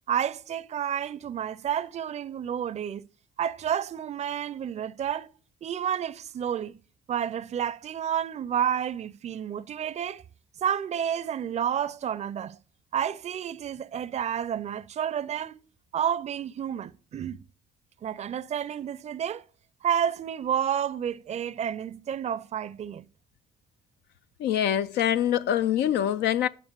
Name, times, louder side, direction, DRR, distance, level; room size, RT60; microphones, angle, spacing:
voice 1, 0.1-3.0 3.4-5.3 5.6-6.7 7.1-10.2 10.6-12.6 12.9-15.6 15.9-17.4 18.0-19.4 19.8-23.1, right 9 dB, 40° right, 0.5 m, -30 dB
voice 2, 24.4-26.5, left 10 dB, 75° left, 0.4 m, -24 dB
9.4 x 4.6 x 6.7 m
supercardioid pair, 65°, 18 cm